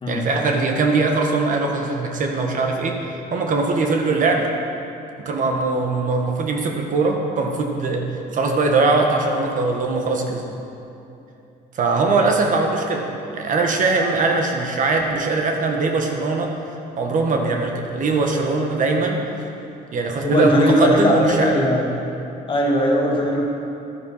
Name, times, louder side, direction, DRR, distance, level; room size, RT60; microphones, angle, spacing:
voice 1, 0.1-3.0 3.3-4.5 5.2-10.4 11.7-16.5 17.0-19.2 19.9-21.5, right 3 dB, 50° right, 2 dB, 1.4 m, -21 dB
voice 2, 20.2-21.8 22.5-23.4, equal, 30° left, -2 dB, 2.2 m, -19 dB
12.0 x 9.3 x 5.6 m, 2.7 s
cardioid pair, 110°, 17 cm